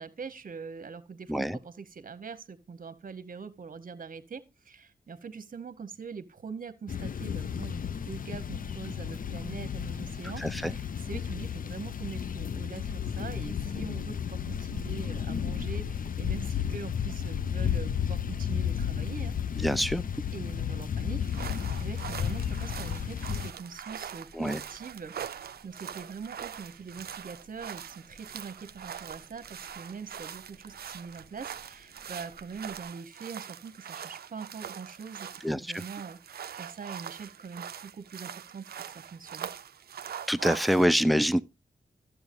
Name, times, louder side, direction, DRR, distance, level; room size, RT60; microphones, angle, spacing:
voice 1, 0.0-19.4 20.3-25.2 25.6-39.5, right 5 dB, 55° right, 0.9 m, -43 dB
sound 1, 6.9-23.5, left 8 dB, 55° left, 0.5 m, -33 dB
voice 2, 10.4-10.7 19.6-20.0 24.3-24.6 35.4-35.8 40.3-41.4, equal, ahead, 0.5 m, -26 dB
sound 2, 13.3-32.8, equal, 85° left, 4.5 m, -57 dB
sound 3, 21.2-40.9, right 8 dB, 75° right, 0.4 m, -42 dB
12.0 x 7.9 x 2.5 m
cardioid pair, 50°, 16 cm